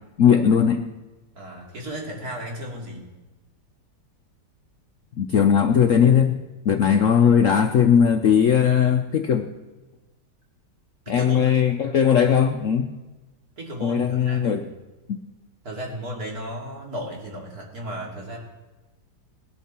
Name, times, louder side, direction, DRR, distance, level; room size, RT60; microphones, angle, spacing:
voice 1, 0.2-0.9 5.2-9.5 11.1-12.9 13.8-14.6 15.1-15.2, left 8 dB, 65° left, 6 dB, 0.8 m, -19 dB
voice 2, 1.3-3.1 11.1-11.4 13.6-14.6 15.6-18.4, equal, 55° right, -2 dB, 3.1 m, -34 dB
18.5 x 11.5 x 4.3 m, 1.1 s
omnidirectional pair, 1.9 m